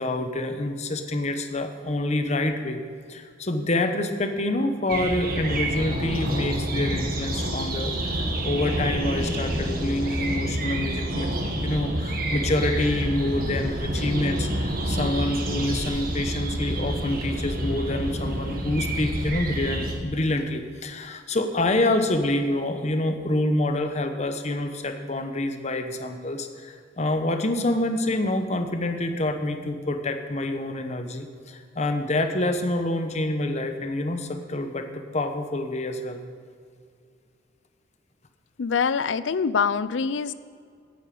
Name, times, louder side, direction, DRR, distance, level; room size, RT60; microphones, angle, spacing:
voice 1, 0.0-2.8 3.1-11.3 11.6-36.2, left 1 dB, 35° left, 7 dB, 1.0 m, -27 dB
sound 1, 4.9-19.9, right 1 dB, 50° right, 1.6 m, -28 dB
voice 2, 38.6-40.3, left 6 dB, 80° left, 16 dB, 0.5 m, -24 dB
9.2 x 8.9 x 8.4 m, 2.1 s
head